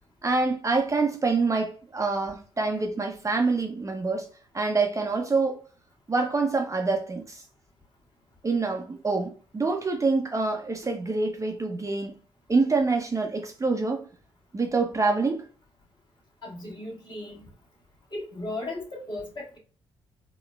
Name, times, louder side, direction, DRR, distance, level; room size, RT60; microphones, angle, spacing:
voice 1, 0.2-4.3 4.5-5.6 6.1-7.4 8.4-12.1 12.5-14.1 14.5-15.4, right 3 dB, 25° right, 0.6 m, -26 dB
voice 2, 16.4-17.4 18.1-19.6, left 2 dB, 35° left, 1.5 m, -36 dB
3.9 x 2.2 x 2.2 m
hypercardioid pair, 40°, 13 cm